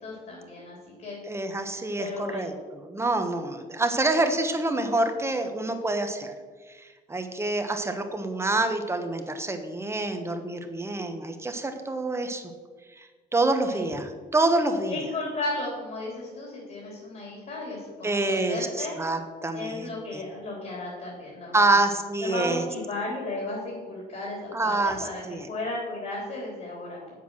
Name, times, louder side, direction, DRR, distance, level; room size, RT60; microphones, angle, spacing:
voice 1, 0.0-0.8 1.0-1.2 2.0-2.5 13.7-13.9 14.9-19.0 19.5-21.8 22.2-25.2 25.5-27.0, left 2 dB, 50° left, -3 dB, 3.5 m, -34 dB
voice 2, 1.3-6.3 6.7-12.4 13.0-15.1 18.0-20.2 21.5-22.6 24.5-25.5, right 2 dB, 15° right, 6 dB, 1.2 m, -27 dB
8.1 x 7.7 x 6.2 m, 1.4 s
cardioid pair, 110°, 17 cm